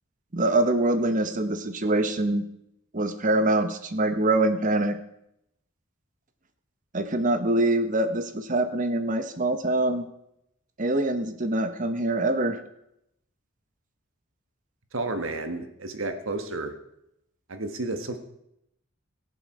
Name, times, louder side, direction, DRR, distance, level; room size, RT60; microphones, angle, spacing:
voice 1, 0.3-2.4 2.9-5.0 6.9-10.1 10.8-12.6, right 2 dB, 40° right, 9 dB, 1.0 m, -24 dB
voice 2, 14.9-16.7 17.5-18.2, right 2 dB, 70° right, 7 dB, 1.4 m, -31 dB
21.0 x 7.0 x 4.8 m, 0.81 s
head